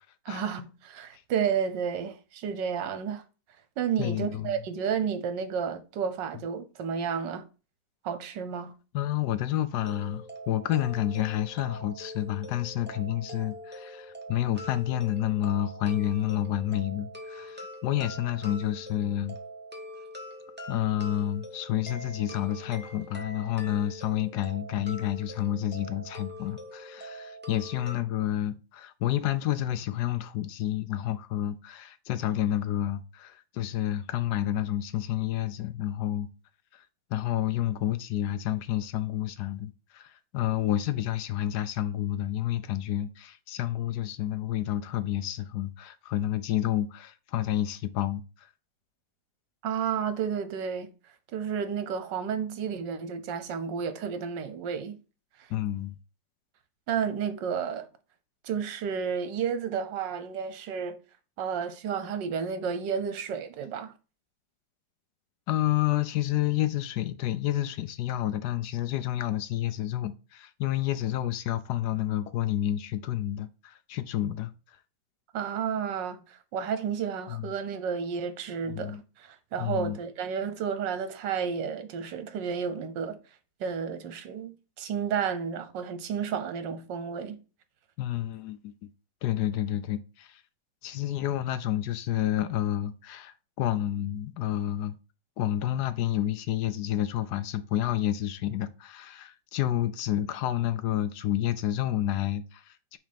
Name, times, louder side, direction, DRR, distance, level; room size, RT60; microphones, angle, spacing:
voice 1, 0.2-3.2 3.8-7.4 8.0-8.7 49.6-50.9 51.3-55.0 55.4-55.5 56.9-57.9 58.4-61.0 61.4-63.9 75.3-83.2 83.6-87.4, right 7 dB, 75° right, 1.5 m, -31 dB
voice 2, 4.0-4.6 8.9-19.4 20.7-36.3 36.7-36.8 37.1-48.5 55.5-55.9 65.5-74.5 77.3-77.5 78.7-79.0 79.6-80.0 88.0-88.9 89.2-90.4 90.8-95.0 95.4-103.0, left 12 dB, 75° left, 1.1 m, -29 dB
sound 1, 9.8-27.9, equal, 10° right, 0.6 m, -43 dB
5.9 x 3.3 x 5.1 m
omnidirectional pair, 2.0 m